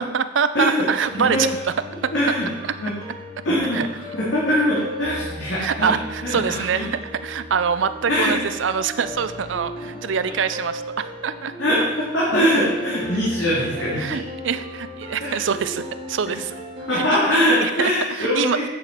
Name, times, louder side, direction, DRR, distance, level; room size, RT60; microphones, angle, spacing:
voice 1, 0.0-1.5 2.0-2.1 3.7-3.9 5.6-11.5 14.0-16.5 16.9-17.0 17.6-17.9 18.2-18.6, right 6 dB, 75° right, 12 dB, 0.5 m, -24 dB
voice 2, 0.5-1.4 2.1-2.5 2.8-2.9 3.4-5.9 6.2-6.9 8.1-8.4 11.6-14.2 15.2-15.4 16.3-16.4 16.8-18.6, equal, 90° left, -7 dB, 2.3 m, -22 dB
sound 1, 1.0-17.0, equal, 30° right, 1.2 m, -36 dB
8.3 x 6.8 x 4.5 m, 1.1 s
head